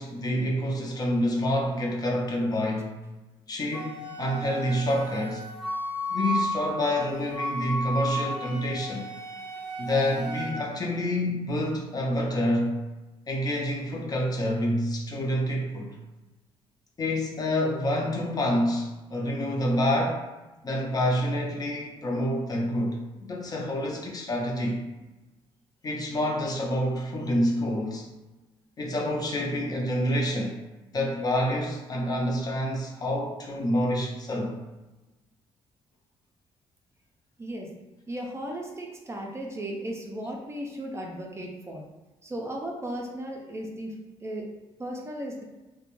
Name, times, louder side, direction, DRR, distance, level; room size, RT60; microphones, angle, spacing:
voice 1, 0.0-3.0 3.5-5.5 6.1-9.1 9.8-12.8 13.3-16.0 17.0-20.3 20.6-24.8 25.8-28.1 28.8-30.6 30.9-34.6, left 1 dB, 35° left, 0 dB, 0.5 m, -27 dB
Wind instrument woodwind instrument, 3.7-10.6, right 1 dB, 10° right, 0.8 m, -33 dB
voice 2, 37.4-37.7 38.1-41.8 42.2-44.5 44.8-45.4, right 1 dB, 25° right, 0 dB, 0.4 m, -36 dB
2.4 x 2.2 x 3.0 m, 1.1 s
cardioid pair, 100°, 11 cm